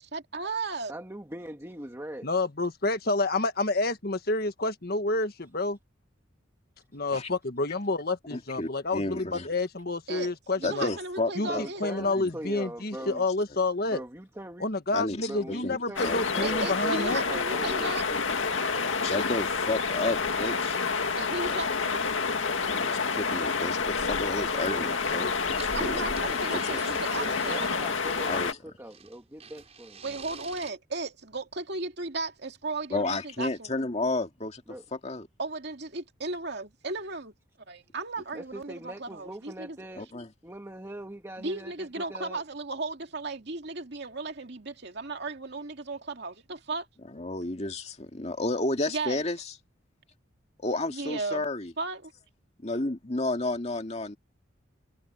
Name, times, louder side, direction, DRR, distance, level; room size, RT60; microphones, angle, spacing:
voice 1, 0.0-0.9 10.1-11.8 16.4-18.1 21.1-22.1 25.7-27.7 30.0-33.7 35.4-37.3 37.7-39.8 41.4-46.9 48.9-49.2 50.9-51.4 51.8-52.1, right 3 dB, 55° right, 2.5 m, -35 dB
voice 2, 0.9-2.3 11.4-13.2 13.9-14.7 15.2-18.0 24.6-25.0 27.1-30.2 34.7-34.8 38.3-40.1 40.4-42.4, right 1 dB, 15° right, 1.4 m, -41 dB
voice 3, 2.2-5.8 6.9-10.9 11.4-11.5 11.8-14.0 14.6-17.2, left 2 dB, 50° left, 1.6 m, -29 dB
voice 4, 8.3-9.5 10.6-12.3 14.9-16.2 19.0-20.8 21.5-21.6 22.7-26.8 28.2-28.6 32.9-34.6 34.9-35.3 39.9-40.3 47.1-49.4 50.6-51.7 52.6-54.2, left 2 dB, 35° left, 2.1 m, -32 dB
sound 1, 16.0-28.5, left 4 dB, 80° left, 2.1 m, -28 dB
sound 2, 25.5-28.5 28.9-30.7, right 6 dB, 35° right, 6.1 m, -47 dB
head